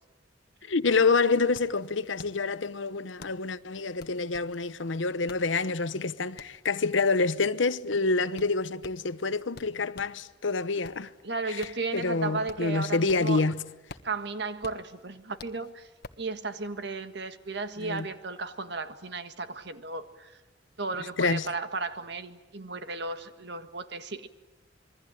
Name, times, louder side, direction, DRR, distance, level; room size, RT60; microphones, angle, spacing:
voice 1, 0.6-11.1 11.9-13.6 17.8-18.0 21.2-21.5, left 4 dB, 80° left, 0.9 m, -27 dB
sound 1, 1.5-10.2 10.6-13.5 13.7-16.3, left 3 dB, 55° left, 1.3 m, -49 dB
voice 2, 11.2-13.4 14.0-15.9 16.2-20.4 20.8-24.3, right 3 dB, 60° right, 1.6 m, -34 dB
27.0 x 22.5 x 9.1 m
head